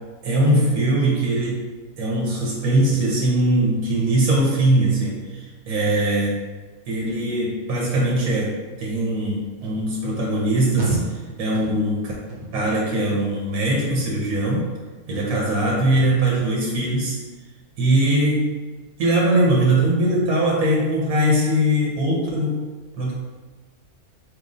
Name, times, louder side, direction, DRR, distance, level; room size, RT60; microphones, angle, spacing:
voice 1, 0.2-1.6 2.0-6.4 6.9-12.1 12.5-14.7 15.1-17.2 17.8-18.5 19.0-22.6 23.0-23.1, right 1 dB, 85° right, -4 dB, 1.3 m, -21 dB
sound 1, 9.6-9.8 10.3-10.5 10.8-11.2 11.5-12.0 12.3-12.7 13.0-13.4 13.8-14.2 14.5-14.7, right 3 dB, 60° right, 0.8 m, -29 dB
4.2 x 3.1 x 2.6 m, 1.3 s
omnidirectional pair, 1.5 m